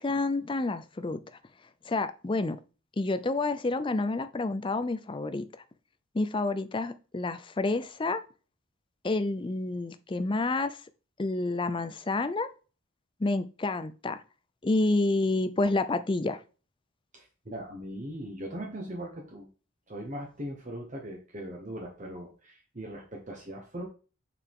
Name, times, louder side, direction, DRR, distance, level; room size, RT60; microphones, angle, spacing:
voice 1, 0.0-1.2 1.9-2.6 3.0-5.4 6.1-8.2 9.0-10.8 11.2-12.5 13.2-14.2 14.6-16.4, left 2 dB, 25° left, 11 dB, 0.4 m, -29 dB
voice 2, 17.1-19.5 19.9-23.8, equal, 35° right, 0 dB, 1.2 m, -40 dB
6.7 x 4.9 x 3.7 m, 0.36 s
head